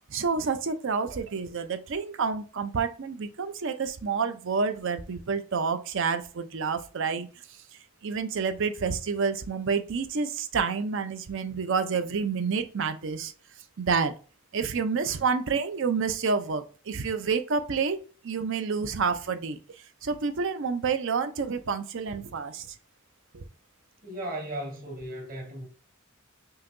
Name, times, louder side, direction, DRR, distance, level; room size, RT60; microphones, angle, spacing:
voice 1, 0.1-7.3 8.0-13.3 13.8-14.1 14.5-19.6 20.0-22.7 23.3-23.4, right 5 dB, 60° right, 0.6 m, -29 dB
voice 2, 24.0-25.7, right 1 dB, 40° right, 1.7 m, -36 dB
5.5 x 2.8 x 2.6 m
head